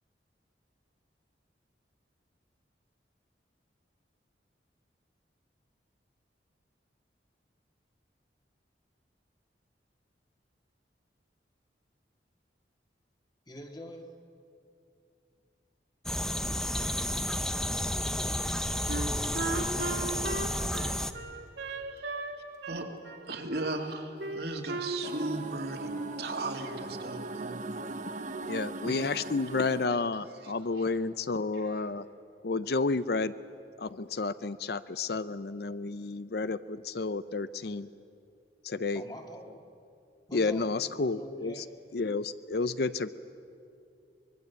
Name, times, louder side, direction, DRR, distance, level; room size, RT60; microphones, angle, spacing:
voice 1, 13.5-14.1 38.9-39.7 40.3-41.7, equal, 25° left, 3 dB, 2.0 m, -45 dB
sound 1, 16.0-21.1, equal, 5° left, 0.7 m, -31 dB
Wind instrument woodwind instrument, 18.9-22.4 22.6-23.8 24.2-25.5 25.8-26.3, right 2 dB, 75° right, 2.1 m, -36 dB
voice 2, 23.3-27.7 28.8-29.1 30.4-30.5, right 2 dB, 60° right, 3 dB, 2.5 m, -37 dB
sound 2, 25.0-29.9, right 2 dB, 45° right, 0.9 m, -40 dB
voice 3, 28.4-32.1 32.4-33.4 33.8-37.9 38.6-39.0 40.3-41.6 41.9-43.1, left 3 dB, 60° left, 15 dB, 0.6 m, -31 dB
24.0 x 21.5 x 8.3 m, 2.5 s
head